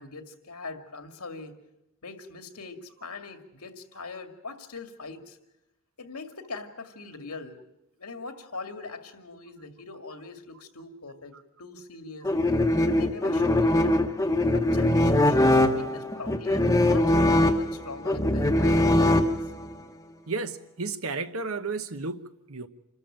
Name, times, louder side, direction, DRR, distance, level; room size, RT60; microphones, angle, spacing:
voice 1, 0.0-1.6 2.0-5.4 6.0-7.6 8.0-12.3 12.9-14.0 14.5-19.4, left 3 dB, 90° left, 2.3 m, -42 dB
sound 1, 12.2-19.7, left 1 dB, 15° left, 1.0 m, -22 dB
voice 2, 20.3-22.7, right 4 dB, 70° right, 1.1 m, -33 dB
27.0 x 13.5 x 8.9 m
head